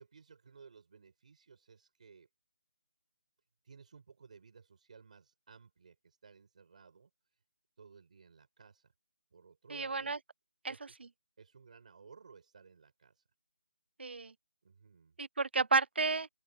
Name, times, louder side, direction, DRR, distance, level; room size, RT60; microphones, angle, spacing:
voice 1, 0.0-2.3 3.6-7.4 7.8-8.9 9.3-10.1 10.6-11.1 11.4-13.2 14.6-15.2, right 5 dB, 45° right, 6.1 m, -58 dB
voice 2, 9.7-10.2 10.6-10.7 14.0-14.3 15.2-16.3, right 4 dB, 90° right, 0.5 m, -31 dB
open air
hypercardioid pair, 175°, 6 cm